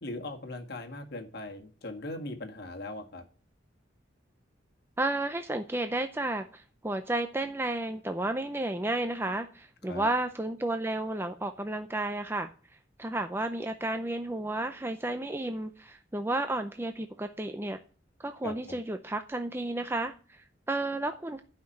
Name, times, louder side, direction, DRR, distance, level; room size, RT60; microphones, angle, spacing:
voice 1, 0.0-3.2 9.9-10.1 18.4-18.8, left 2 dB, 60° left, 4 dB, 1.8 m, -39 dB
voice 2, 5.0-12.5 13.0-17.8 18.2-21.4, right 2 dB, 15° right, 7 dB, 0.5 m, -32 dB
12.0 x 5.9 x 8.5 m, 0.41 s
head